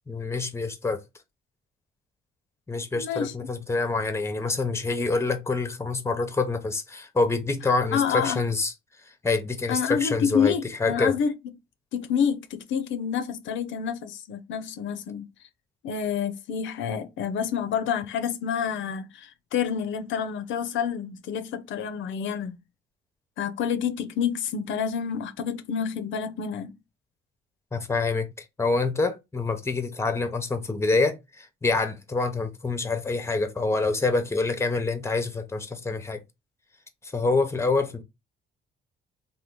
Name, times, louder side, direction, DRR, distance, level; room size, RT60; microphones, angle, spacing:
voice 1, 0.1-1.0 2.7-8.7 9.2-10.5 10.8-11.2 27.7-36.2 37.0-38.0, left 3 dB, 15° left, 0.7 m, -26 dB
voice 2, 2.9-3.5 7.9-8.4 9.7-11.3 11.9-15.3 15.8-22.6 23.4-26.7, left 7 dB, 75° left, 0.5 m, -28 dB
3.0 x 2.2 x 3.5 m
cardioid pair, 90°, 20 cm